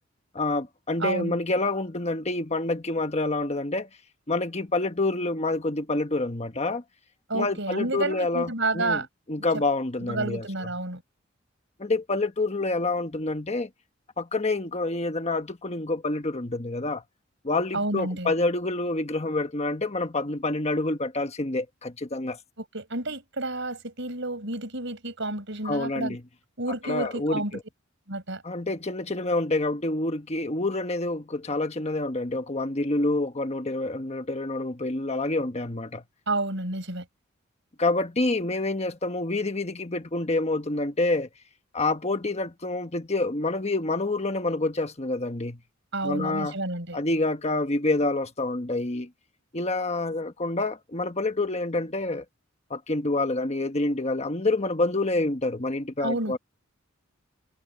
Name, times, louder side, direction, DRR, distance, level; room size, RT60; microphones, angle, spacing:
voice 1, 0.3-3.9 4.3-6.8 7.3-9.0 9.3-10.4 11.8-13.7 14.2-17.0 17.4-22.4 25.6-26.2 26.8-27.6 28.4-36.0 37.8-41.3 41.7-45.6 46.0-46.5 46.9-49.1 49.5-52.2 52.7-56.4, left 2 dB, 30° left, 1.3 m, -27 dB
voice 2, 1.0-1.4 7.3-9.1 9.5-9.6 10.0-11.0 17.7-18.3 22.6-26.2 26.6-27.6 28.1-28.4 36.3-37.1 45.9-47.0 56.0-56.4, right 2 dB, 60° right, 7.3 m, -30 dB
head